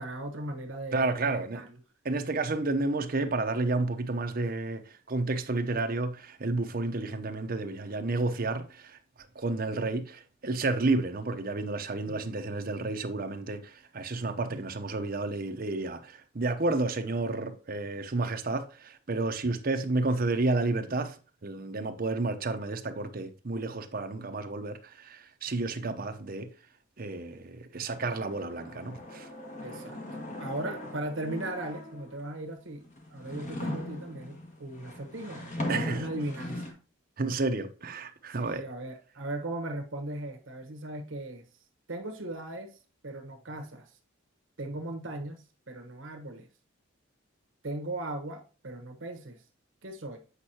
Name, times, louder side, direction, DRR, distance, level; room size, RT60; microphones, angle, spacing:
voice 1, 0.0-1.1 1.5-1.7 12.1-12.2 14.5-14.6 29.6-30.0 30.4-32.8 33.1-36.8 38.3-41.4 41.9-42.7 43.0-43.9 44.6-46.5 47.6-49.4 49.8-50.2, right 1 dB, 70° right, 1.2 m, -38 dB
voice 2, 0.9-1.6 2.0-9.0 9.3-21.2 21.4-26.5 27.0-29.3 35.7-36.1 37.2-38.6, right 2 dB, 45° right, 0.8 m, -31 dB
sound 1, 27.9-32.2 32.8-36.7, left 1 dB, 35° left, 1.6 m, -39 dB
8.2 x 5.4 x 2.8 m
head